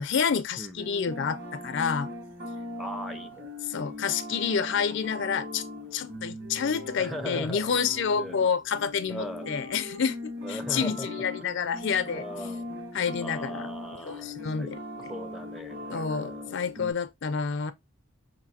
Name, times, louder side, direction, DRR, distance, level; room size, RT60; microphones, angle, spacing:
voice 1, 0.0-2.1 3.7-5.6 5.9-12.3 12.9-15.1 15.9-17.7, left 6 dB, 55° left, 0.4 m, -29 dB
sound 1, 0.8-16.9, left 1 dB, 50° right, 3.0 m, -39 dB
voice 2, 2.8-3.5 7.0-7.7 8.2-8.4 9.1-9.5 10.4-11.1 12.1-12.7 13.2-16.5, equal, ahead, 0.5 m, -39 dB
5.8 x 2.6 x 2.7 m
head